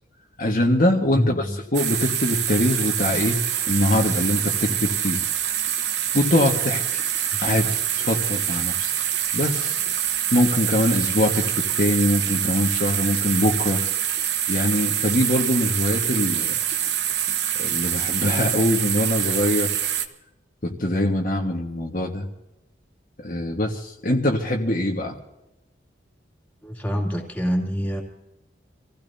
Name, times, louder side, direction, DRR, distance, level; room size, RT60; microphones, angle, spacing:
voice 1, 0.4-3.4 3.7-5.2 6.1-7.0 7.4-8.9 9.3-9.7 10.3-13.8 14.5-16.5 17.6-19.7 20.6-22.3 23.2-25.2, left 1 dB, 50° left, 0 dB, 1.7 m, -23 dB
voice 2, 1.1-1.6 7.3-7.4 26.6-28.0, equal, 10° left, -1 dB, 2.8 m, -26 dB
sound 1, 1.7-20.1, right 10 dB, 65° right, 1.1 m, -25 dB
27.0 x 16.0 x 2.8 m, 0.92 s
head